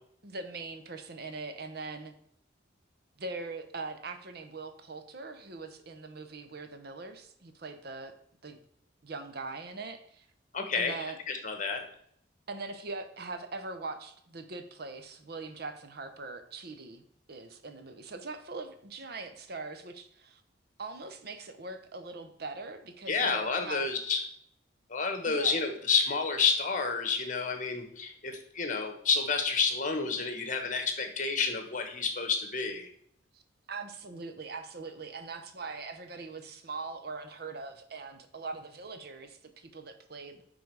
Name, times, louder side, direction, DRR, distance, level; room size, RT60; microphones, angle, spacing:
voice 1, 0.2-2.1 3.2-8.1 8.4-8.6 9.0-10.3 10.7-11.2 12.5-20.4 20.8-23.8 25.3-25.5 33.3-33.4 33.7-40.4, right 3 dB, 55° right, 8 dB, 0.8 m, -41 dB
voice 2, 10.5-11.0 11.3-11.9 23.1-24.2 24.9-32.9, left 5 dB, 40° left, 6 dB, 1.2 m, -30 dB
9.6 x 4.0 x 4.7 m, 0.66 s
head